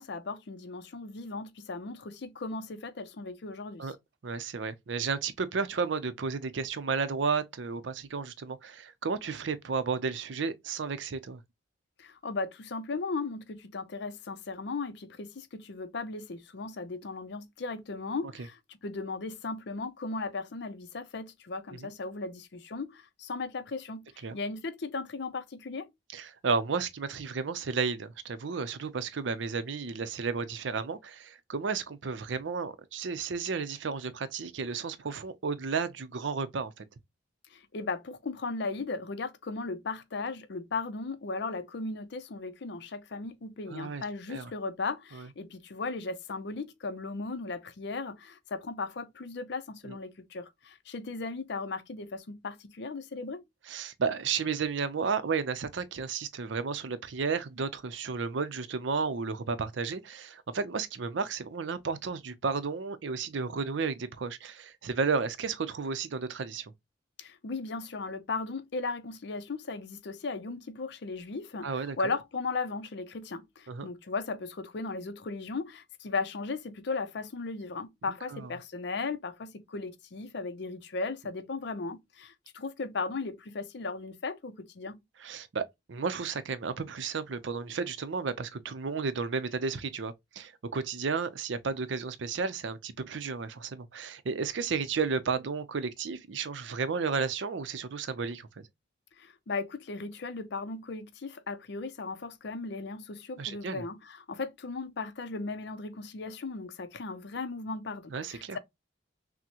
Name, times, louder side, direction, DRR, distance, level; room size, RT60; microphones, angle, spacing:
voice 1, 0.0-3.9 12.0-25.9 37.5-53.4 67.2-85.0 99.2-108.6, left 3 dB, 65° left, 0.6 m, -37 dB
voice 2, 4.2-11.4 21.7-21.9 24.2-24.4 26.1-36.9 43.7-44.5 45.1-45.3 49.8-50.0 53.7-66.7 71.6-72.0 73.7-73.9 78.3-78.5 85.2-98.7 103.4-103.8 108.1-108.6, right 5 dB, 75° right, 0.5 m, -33 dB
6.0 x 2.1 x 2.8 m
head